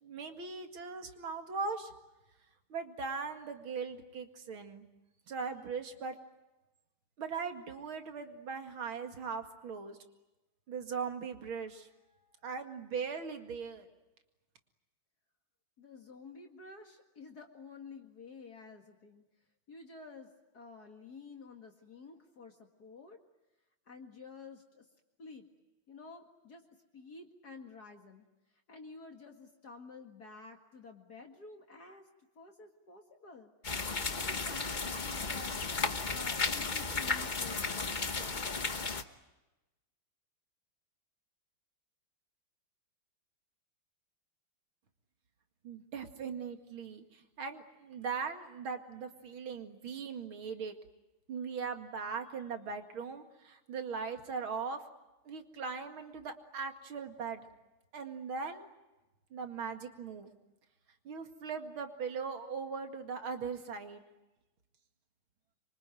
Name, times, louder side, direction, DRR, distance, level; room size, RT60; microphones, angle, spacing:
voice 1, 0.0-1.9 2.7-4.9 5.3-6.1 7.2-10.0 10.7-11.9 12.4-13.9 45.6-50.7 51.3-54.8 55.3-57.5 57.9-58.7 59.3-60.3 61.0-64.0, right 5 dB, 70° right, 6 dB, 2.9 m, -39 dB
voice 2, 15.8-19.2 19.7-23.2 23.9-24.9 25.2-25.5 25.9-26.7 26.9-28.3 28.7-32.1 32.4-33.5 34.0-35.6 36.1-38.6, left 4 dB, 45° left, 3 dB, 2.4 m, -51 dB
sound 1, 33.6-39.0, left 4 dB, 30° left, 0.9 m, -34 dB
26.0 x 24.5 x 9.1 m, 1.0 s
omnidirectional pair, 2.4 m